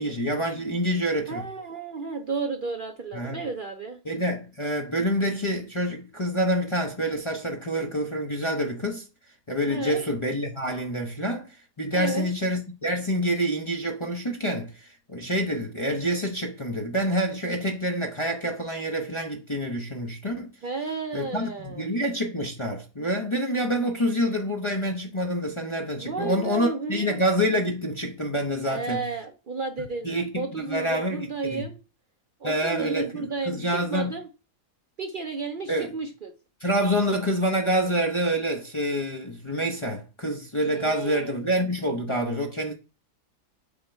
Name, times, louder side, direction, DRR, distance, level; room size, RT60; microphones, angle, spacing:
voice 1, 0.0-1.4 3.1-3.4 4.0-9.1 9.5-11.5 11.8-20.5 21.1-29.0 29.8-31.7 32.4-34.1 35.7-36.0 36.6-42.7, equal, 25° left, 0.6 m, -27 dB
voice 2, 1.3-4.0 9.7-10.1 11.9-12.3 20.6-21.9 23.7-23.8 26.0-27.1 28.6-31.8 32.4-34.3 35.0-36.3 40.7-41.5, right 4 dB, 70° right, 0.5 m, -33 dB
7.2 x 3.7 x 4.5 m
omnidirectional pair, 1.7 m